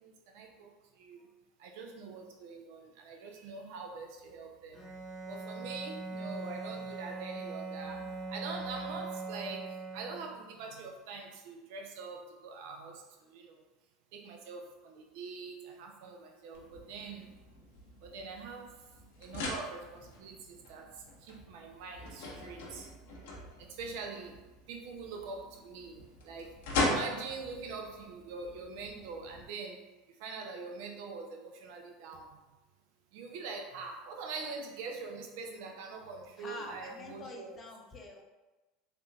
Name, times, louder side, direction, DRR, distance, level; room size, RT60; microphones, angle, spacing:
voice 1, 0.0-0.7 1.0-1.2 1.6-4.8 5.3-9.7 9.9-13.0 13.3-13.5 14.1-17.3 18.0-18.7 19.2-20.9 21.2-22.9 23.8-24.3 24.7-26.0 26.2-26.5 26.8-29.8 30.2-32.3 33.1-37.6, right 4 dB, 65° right, 2 dB, 0.6 m, -43 dB
Bowed string instrument, 4.7-10.5, right 3 dB, 5° right, 1.1 m, -41 dB
sound 1, 16.5-29.5, left 2 dB, 70° left, 0.7 m, -40 dB
voice 2, 36.4-38.2, left 3 dB, 30° left, 0 dB, 0.7 m, -46 dB
3.5 x 2.9 x 2.4 m, 1.1 s
hypercardioid pair, 80°, 0 cm